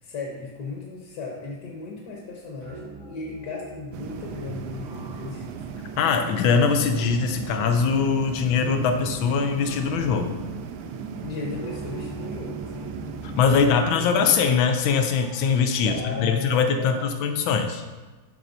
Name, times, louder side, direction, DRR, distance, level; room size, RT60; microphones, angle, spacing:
voice 1, 0.0-5.5 11.2-13.0 13.3-14.5 15.6-17.1, left 4 dB, 60° left, -1 dB, 1.4 m, -36 dB
sound 1, 2.6-16.3, right 4 dB, 35° right, 0.7 m, -43 dB
sound 2, 3.9-13.8, right 5 dB, 85° right, 1.4 m, -37 dB
voice 2, 6.0-10.4 13.2-17.8, left 5 dB, 90° left, 6 dB, 1.4 m, -22 dB
12.5 x 4.2 x 2.6 m, 1.3 s
omnidirectional pair, 2.1 m